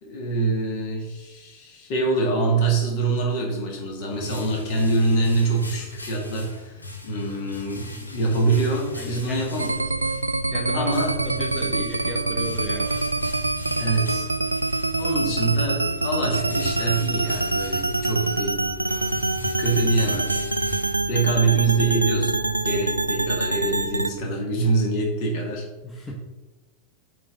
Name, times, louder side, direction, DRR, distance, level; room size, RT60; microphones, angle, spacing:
voice 1, 0.0-9.7 10.7-11.2 13.8-14.3 14.9-18.6 19.6-20.3 21.1-25.7 26.0-26.1, right 3 dB, 45° left, 1 dB, 1.9 m, -25 dB
sound 1, 3.7-21.5, left 1 dB, 80° left, 0.9 m, -38 dB
voice 2, 8.9-9.4 10.5-13.0 25.8-26.1, equal, 10° left, -1 dB, 1.0 m, -34 dB
sound 2, 9.6-24.1, right 2 dB, 85° right, 0.3 m, -25 dB
8.2 x 4.1 x 3.8 m, 1.2 s
figure-of-eight pair, 90°, 0 cm